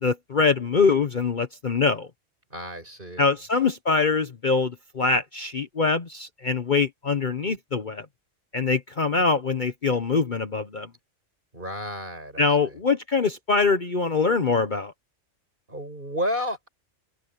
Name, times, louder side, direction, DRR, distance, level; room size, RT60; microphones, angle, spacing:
voice 1, 0.0-2.1 3.2-8.1 8.5-10.9 12.4-14.9, left 4 dB, 40° left, 1.1 m, -23 dB
voice 2, 2.5-3.3 11.5-12.4 15.7-16.7, equal, 40° right, 7.6 m, -31 dB
open air
omnidirectional pair, 1.3 m